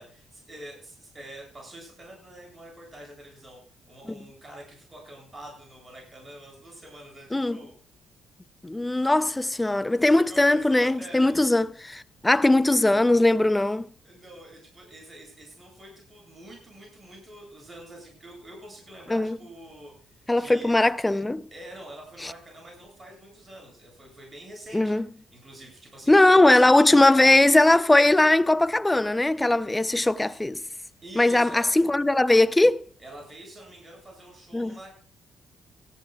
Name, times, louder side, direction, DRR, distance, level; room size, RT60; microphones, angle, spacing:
voice 1, 0.0-3.6 3.9-7.7 9.9-11.4 14.0-20.7 21.1-21.2 21.5-27.3 31.0-31.7 33.0-34.9, right 1 dB, 25° right, 7.9 m, -46 dB
voice 2, 8.6-13.9 19.1-19.4 20.3-21.5 22.2-22.3 24.7-25.1 26.1-30.6 31.2-32.8 34.5-34.7, left 2 dB, 15° left, 0.6 m, -20 dB
18.0 x 14.5 x 2.4 m
cardioid pair, 90°, 0 cm